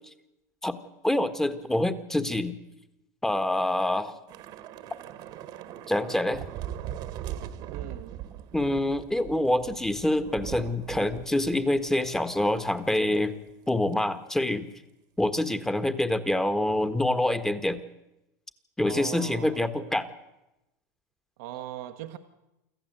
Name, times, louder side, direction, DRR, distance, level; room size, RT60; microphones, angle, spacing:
voice 1, 1.0-2.5 3.2-4.1 5.9-6.4 8.5-13.3 13.7-14.7 15.2-17.8 18.8-20.1, left 1 dB, 5° left, 10 dB, 1.5 m, -26 dB
Thunder / Rain, 4.3-12.9 13.1-13.3 13.7-13.9, right 11 dB, 50° right, 1.6 m, -40 dB
voice 2, 7.7-8.2 18.8-20.0 21.4-22.2, right 13 dB, 70° right, 7 dB, 1.3 m, -40 dB
25.5 x 14.5 x 8.0 m, 0.93 s
supercardioid pair, 110°, 9 cm